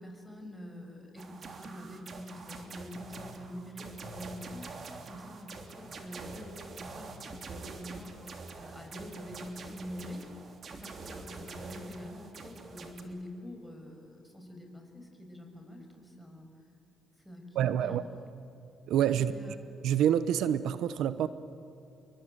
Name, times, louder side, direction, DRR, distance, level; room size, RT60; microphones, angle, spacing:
voice 1, 0.0-8.2 8.6-10.3 10.7-16.5 17.2-18.0 19.1-19.6, left 1 dB, ahead, 6.5 m, -45 dB
sound 1, 1.2-13.0, right 4 dB, 50° right, 3.1 m, -45 dB
voice 2, 17.6-18.0 18.9-19.3 19.8-21.3, right 10 dB, 85° right, 0.9 m, -27 dB
28.0 x 22.5 x 9.1 m
cardioid pair, 90°, 0 cm